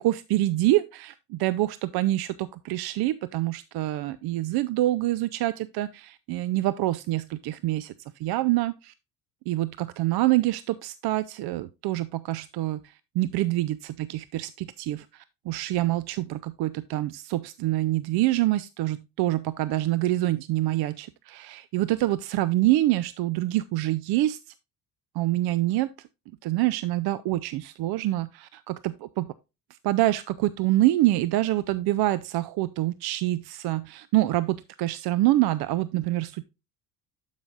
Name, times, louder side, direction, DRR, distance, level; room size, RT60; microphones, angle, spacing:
voice 1, 0.0-7.9 8.2-8.9 9.5-24.4 25.1-26.1 26.4-29.3 29.8-36.4, right 16 dB, 55° right, 0.5 m, -26 dB
11.5 x 5.7 x 2.4 m
supercardioid pair, 80°, 46 cm